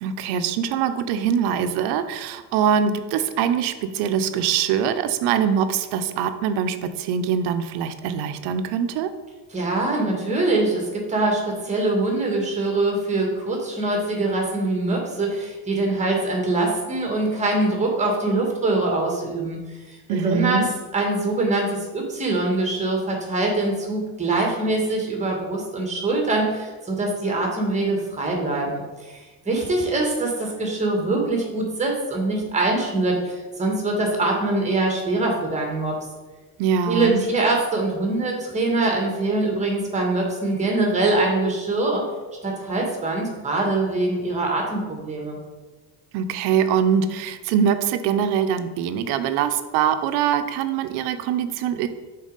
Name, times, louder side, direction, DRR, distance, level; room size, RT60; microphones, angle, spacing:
voice 1, 0.0-9.1 20.1-20.7 36.6-37.3 46.1-51.9, right 8 dB, 85° right, 9 dB, 0.7 m, -23 dB
voice 2, 9.5-20.6 20.9-36.0 36.9-42.0 42.4-45.4, right 2 dB, 20° right, 1 dB, 1.5 m, -23 dB
6.4 x 4.1 x 5.3 m, 1.3 s
cardioid pair, 150°, 38 cm